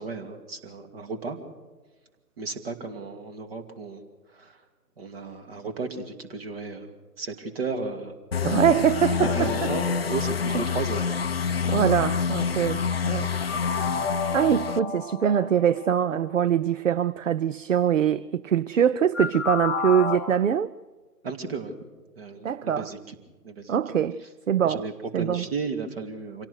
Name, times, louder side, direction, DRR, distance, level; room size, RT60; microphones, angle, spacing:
voice 1, 0.0-1.4 2.4-4.6 5.0-8.2 9.1-11.1 11.6-11.9 21.2-21.7 22.2-23.1 23.4-23.8 24.6-26.5, right 4 dB, 35° right, 2.5 m, -34 dB
sound 1, 8.3-14.8, left 6 dB, 40° left, 0.6 m, -27 dB
voice 2, 8.4-9.3 11.7-13.3 14.3-20.7 22.4-22.9 23.7-24.2 24.5-24.8 25.1-25.4, right 9 dB, 55° right, 0.6 m, -23 dB
sound 2, 9.2-11.3 13.5-16.1 19.1-20.2, left 5 dB, ahead, 1.2 m, -32 dB
26.0 x 17.5 x 6.4 m
figure-of-eight pair, 150°, 48 cm